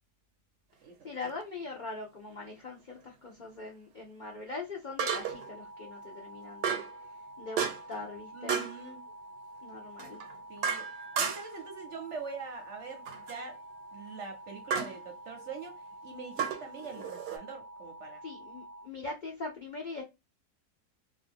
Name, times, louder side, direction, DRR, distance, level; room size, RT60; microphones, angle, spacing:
voice 1, 1.0-6.8 7.4-8.6 9.6-10.2 17.0-17.1 18.2-20.0, left 3 dB, 70° left, 0.4 m, -41 dB
sound 1, 1.3-1.4 5.0-5.5 6.6-7.0 7.6-8.0 8.5-8.8 10.0-11.6 13.1-13.4 14.7-15.0 16.4-17.4, right 6 dB, 85° right, 1.2 m, -33 dB
sound 2, 5.0-18.9, right 1 dB, 35° left, 0.7 m, -48 dB
voice 2, 8.3-9.0 10.5-10.9 11.2-13.6 13.9-18.2, right 5 dB, 60° right, 0.8 m, -43 dB
2.6 x 2.4 x 3.4 m
omnidirectional pair, 1.7 m